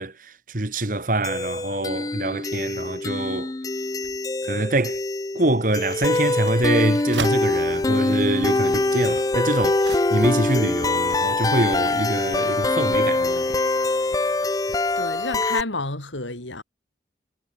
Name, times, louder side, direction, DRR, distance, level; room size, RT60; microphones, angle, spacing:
voice 1, 0.0-3.5 4.4-5.0 5.3-13.6, right 2 dB, 45° right, 1.8 m, -25 dB
sound 1, 1.2-15.6, left 2 dB, 20° left, 0.4 m, -24 dB
sound 2, 5.6-7.4 8.2-10.5 10.9-11.5, right 5 dB, 80° right, 7.1 m, -39 dB
voice 2, 15.0-16.6, left 3 dB, 90° left, 6.6 m, -30 dB
head